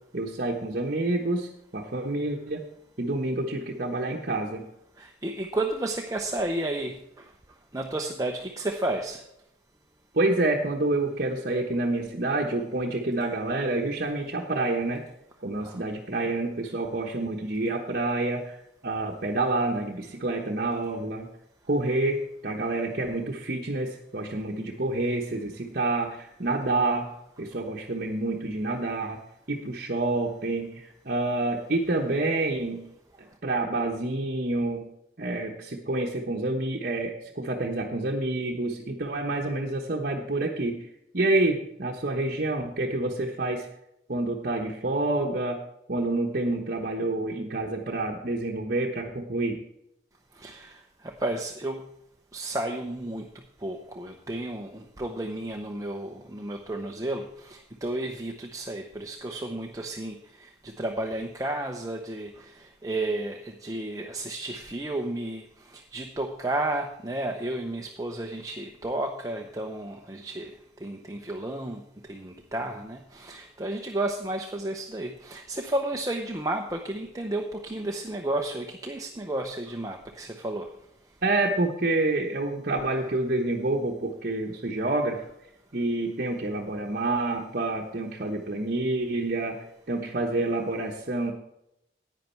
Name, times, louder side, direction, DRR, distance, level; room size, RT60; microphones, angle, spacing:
voice 1, 0.1-2.6 3.0-4.7 10.1-15.0 15.4-18.6 18.8-21.3 21.7-27.1 27.4-29.2 29.5-32.8 33.4-34.9 35.2-40.9 41.1-43.7 44.1-45.6 45.9-49.6 81.2-85.2 85.7-91.3, right 2 dB, 50° right, 0 dB, 1.1 m, -28 dB
voice 2, 5.0-7.0 7.7-9.2 15.6-15.8 50.4-51.8 52.3-53.3 53.6-65.4 65.7-70.5 70.8-71.8 72.1-80.7, right 1 dB, 20° right, 3 dB, 0.7 m, -32 dB
11.0 x 9.3 x 4.5 m, 0.80 s
head